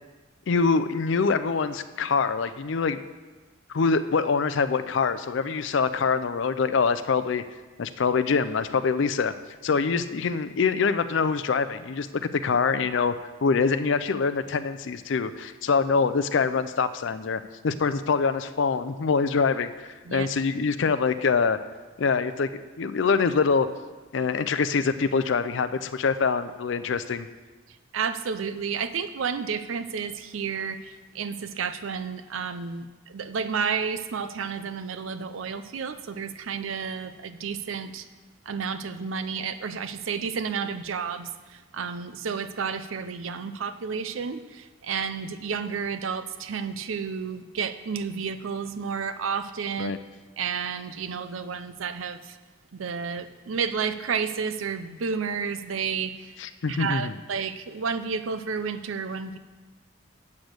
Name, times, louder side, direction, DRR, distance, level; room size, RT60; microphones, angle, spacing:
voice 1, 0.5-3.0 3.7-7.4 7.8-9.3 9.6-13.1 13.4-21.6 22.0-23.7 24.1-27.3 49.8-50.0 56.4-57.1, left 5 dB, 70° left, 13 dB, 0.4 m, -24 dB
voice 2, 27.9-38.1 38.5-49.9 50.4-52.4 52.7-56.4 56.6-59.4, right 6 dB, 80° right, 12 dB, 0.5 m, -31 dB
8.5 x 6.2 x 6.4 m, 1.3 s
head